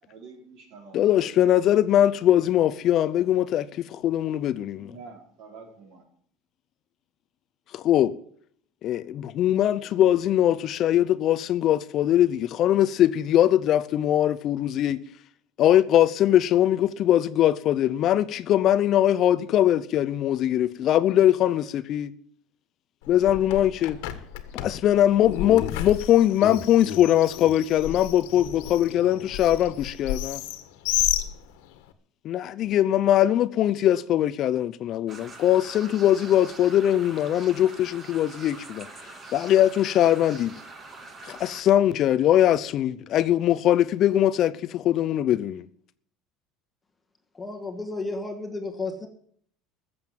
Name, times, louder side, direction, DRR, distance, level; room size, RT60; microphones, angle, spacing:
voice 1, 0.0-1.4 4.7-6.0, right 4 dB, 55° right, 5.0 m, -46 dB
voice 2, 0.9-4.9 7.7-8.1 8.8-15.0 15.6-22.1 23.1-24.0 24.5-30.4 32.2-40.5 41.2-45.6, left 12 dB, 40° left, 0.6 m, -21 dB
Bird, 23.0-31.9, left 13 dB, 80° left, 1.6 m, -33 dB
Laughter, 25.3-27.0 27.3-27.5 27.8-28.0 28.3-29.8, left 10 dB, 60° left, 1.5 m, -36 dB
sound 1, 35.1-41.6, right 3 dB, 20° right, 1.9 m, -44 dB
voice 3, 47.3-49.1, left 3 dB, 10° left, 1.5 m, -32 dB
14.5 x 7.9 x 8.9 m
cardioid pair, 160°, 0 cm